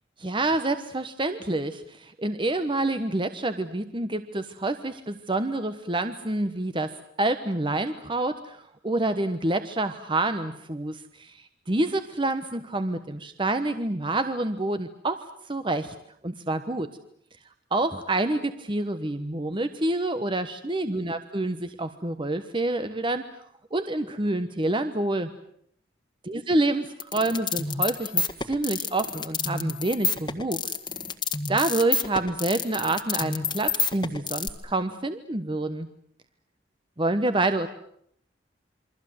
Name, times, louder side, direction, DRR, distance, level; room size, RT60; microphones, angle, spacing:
voice 1, 0.2-15.9 16.2-16.9 17.7-23.3 23.7-25.3 26.2-30.7 31.5-35.9 37.0-37.7, right 2 dB, 25° right, 10 dB, 1.1 m, -27 dB
sound 1, 27.0-34.5, left 4 dB, 25° left, 1.6 m, -28 dB
28.5 x 24.0 x 7.9 m, 0.67 s
head